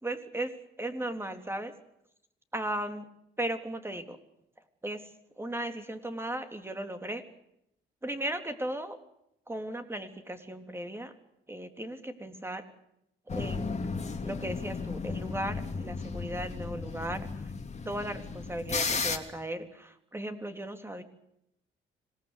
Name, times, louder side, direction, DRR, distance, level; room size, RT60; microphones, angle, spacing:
voice 1, 0.0-0.5 0.8-1.7 2.5-3.1 3.4-4.2 4.8-5.0 5.4-7.2 8.0-9.0 9.5-11.1 11.5-12.6 13.3-13.8 14.2-17.3 17.8-21.0, right 1 dB, 10° right, 7 dB, 3.3 m, -36 dB
sound 1, 13.3-19.2, left 4 dB, 35° left, 2.8 m, -34 dB
26.0 x 19.0 x 8.3 m, 0.79 s
cardioid pair, 90°, 20 cm